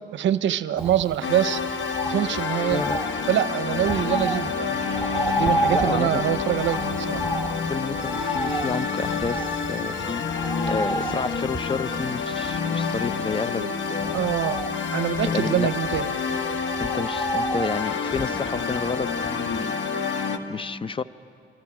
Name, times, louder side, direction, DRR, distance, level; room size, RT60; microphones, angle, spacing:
voice 1, 0.1-1.6 2.0-2.8 3.3-7.2 14.1-14.6 14.9-16.1, right 11 dB, 70° right, 14 dB, 0.6 m, -25 dB
Bird, 0.8-19.9 20.2-20.3, right 1 dB, 5° right, 1.1 m, -32 dB
sound 1, 1.2-20.4, left 5 dB, 70° left, 1.3 m, -29 dB
voice 2, 5.7-6.2 7.7-14.3 15.2-15.7 16.8-19.8 20.5-21.0, left 5 dB, 25° left, 16 dB, 0.6 m, -30 dB
sound 2, 6.6-16.6, left 5 dB, 45° left, 1.0 m, -35 dB
28.0 x 24.0 x 5.9 m, 2.4 s
cardioid pair, 90°, 20 cm